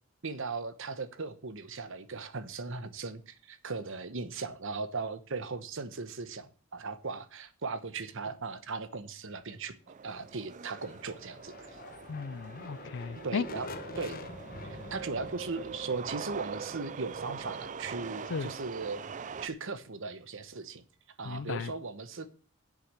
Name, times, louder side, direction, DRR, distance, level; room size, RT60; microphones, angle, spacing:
voice 1, 0.2-9.7 10.0-11.8 13.2-13.7 14.0-14.2 14.7-19.0 19.4-20.8 21.2-22.3, right 4 dB, 65° right, 1.0 m, -38 dB
sound 1, 9.9-19.5, right 6 dB, 35° right, 0.4 m, -43 dB
sound 2, 10.5-18.3, left 2 dB, 40° left, 1.1 m, -47 dB
voice 2, 12.1-13.4 18.3-18.5 21.2-21.7, left 5 dB, 55° left, 0.4 m, -35 dB
8.4 x 6.8 x 7.4 m
head